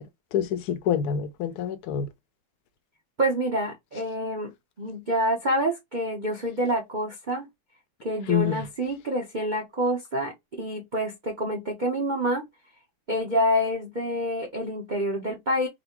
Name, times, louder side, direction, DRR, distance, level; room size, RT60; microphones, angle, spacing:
voice 1, 0.3-2.1 8.3-8.6, left 9 dB, 75° left, 0.9 m, -26 dB
voice 2, 3.2-4.5 4.8-7.5 8.0-12.4 13.1-15.7, equal, 60° right, 0.4 m, -27 dB
4.1 x 2.1 x 2.8 m
omnidirectional pair, 2.1 m